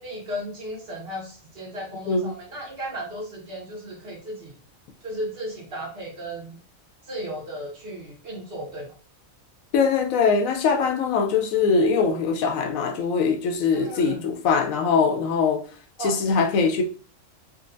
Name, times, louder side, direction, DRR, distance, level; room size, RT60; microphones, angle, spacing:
voice 1, 0.0-4.5 5.0-6.6 7.1-8.9 13.7-14.2 16.0-16.2, equal, 50° right, 1.2 m, -35 dB
voice 2, 2.1-2.4 9.7-15.6 16.0-16.8, left 5 dB, 80° left, 1.0 m, -22 dB
3.7 x 2.2 x 2.5 m
omnidirectional pair, 1.4 m